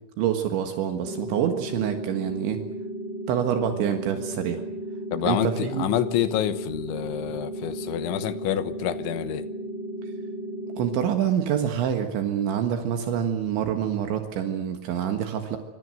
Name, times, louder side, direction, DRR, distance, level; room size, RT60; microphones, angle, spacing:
voice 1, 0.2-2.6 3.3-4.6 5.2-5.9 10.8-15.6, right 9 dB, 75° right, 3.9 m, -26 dB
sound 1, 1.0-11.0, right 1 dB, 15° right, 3.8 m, -34 dB
voice 2, 5.1-9.5, left 12 dB, 80° left, 3.5 m, -27 dB
26.0 x 25.5 x 7.8 m
omnidirectional pair, 5.5 m